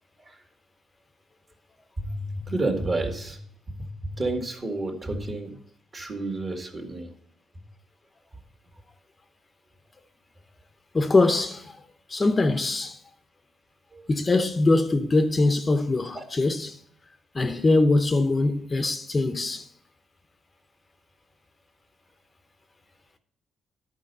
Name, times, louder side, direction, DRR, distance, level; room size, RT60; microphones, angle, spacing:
voice 1, 2.0-3.4 3.7-5.6 5.9-7.1 13.9-14.0 16.1-16.2, right 2 dB, 35° right, 1.9 m, -30 dB
voice 2, 10.9-11.7 12.1-13.0 14.1-16.8 17.3-19.7, left 2 dB, 25° left, 0.6 m, -22 dB
11.0 x 4.5 x 5.3 m
cardioid pair, 90°, 0 cm